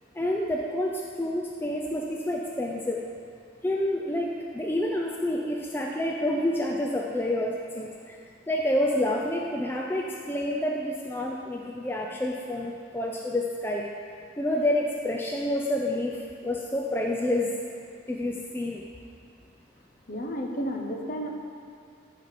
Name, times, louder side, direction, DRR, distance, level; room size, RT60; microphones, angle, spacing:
voice 1, 0.2-0.9 1.2-3.0 3.6-8.2 8.5-13.8 14.4-17.5 18.1-18.8, left 1 dB, 10° left, -1 dB, 0.5 m, -28 dB
voice 2, 20.1-21.3, equal, 45° left, 2 dB, 1.0 m, -32 dB
14.5 x 5.0 x 5.9 m, 2.3 s
head